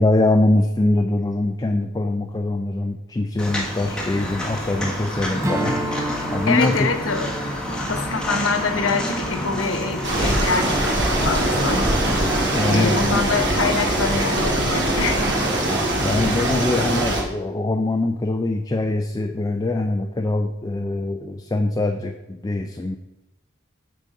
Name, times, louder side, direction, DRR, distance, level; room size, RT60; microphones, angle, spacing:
voice 1, 0.0-5.9 6.3-6.9 12.5-13.2 16.0-23.0, left 2 dB, 20° left, 5 dB, 0.4 m, -23 dB
Walk footsteps, 3.4-12.7, equal, 5° left, 1.2 m, -29 dB
Strum, 5.4-10.1, right 1 dB, 15° right, 0.7 m, -32 dB
voice 2, 6.5-7.3 7.7-11.8 12.6-15.8, left 4 dB, 80° left, 6 dB, 0.9 m, -25 dB
sound 1, 10.0-17.2, right 1 dB, 60° right, 1.8 m, -22 dB
8.2 x 4.0 x 6.5 m, 0.96 s
head